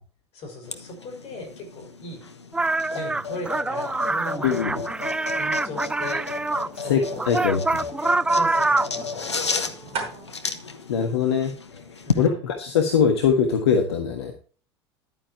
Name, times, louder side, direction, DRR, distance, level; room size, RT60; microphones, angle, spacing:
voice 1, 0.3-2.3 2.9-4.8 5.4-6.3 6.7-7.7 8.3-10.2 12.1-12.5, left 1 dB, 45° left, 6 dB, 5.1 m, -39 dB
sound 1, 0.6-12.3, left 5 dB, 85° left, 1.1 m, -33 dB
sound 2, 2.5-6.7 7.2-9.0, right 2 dB, 5° right, 0.3 m, -25 dB
sound 3, 4.5-12.2, right 5 dB, 45° right, 4.8 m, -42 dB
voice 2, 7.3-7.6 10.9-11.8 12.2-14.3, left 7 dB, 70° left, 5 dB, 1.6 m, -22 dB
11.5 x 9.5 x 2.9 m, 0.38 s
figure-of-eight pair, 75°, 14 cm